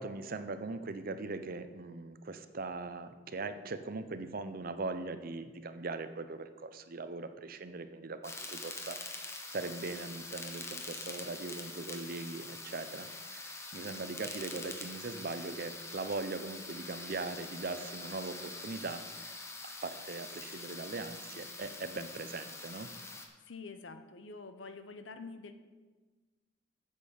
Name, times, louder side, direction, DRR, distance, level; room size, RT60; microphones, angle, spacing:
voice 1, 0.0-13.1 13.3-22.9, right 3 dB, 50° right, 10 dB, 0.7 m, -40 dB
sound 1, 8.2-23.3, left 3 dB, 15° left, 1.0 m, -45 dB
voice 2, 23.4-25.5, left 4 dB, 80° left, 8 dB, 0.9 m, -46 dB
8.4 x 7.4 x 6.4 m, 1.3 s
head